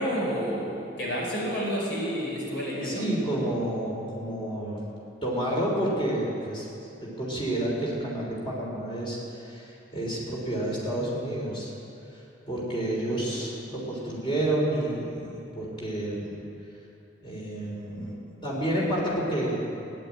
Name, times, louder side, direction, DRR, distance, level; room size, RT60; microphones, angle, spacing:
voice 1, 0.0-3.0, equal, 75° left, -4 dB, 4.8 m, -29 dB
voice 2, 2.8-4.8 5.2-6.7 7.0-11.7 12.5-16.3 17.2-19.6, right 1 dB, 30° left, -3 dB, 3.5 m, -30 dB
15.0 x 10.5 x 8.7 m, 2.8 s
head